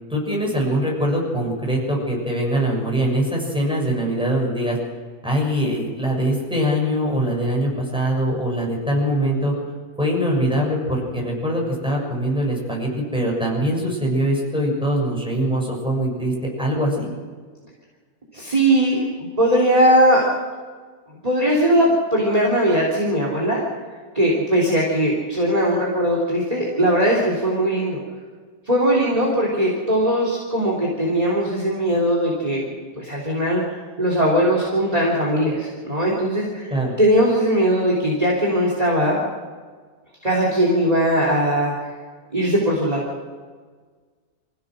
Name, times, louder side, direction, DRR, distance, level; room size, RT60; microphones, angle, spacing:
voice 1, 0.1-4.8 5.2-9.5 10.0-17.1 36.7-36.9, right 1 dB, 5° right, -2 dB, 6.8 m, -22 dB
voice 2, 18.3-19.0 19.4-20.3 21.2-23.6 24.1-28.0 28.7-32.6 33.0-36.7 37.0-39.2 40.2-41.9 42.3-43.0, right 1 dB, 25° right, -3 dB, 3.6 m, -19 dB
26.5 x 16.0 x 6.4 m, 1.5 s
omnidirectional pair, 1.6 m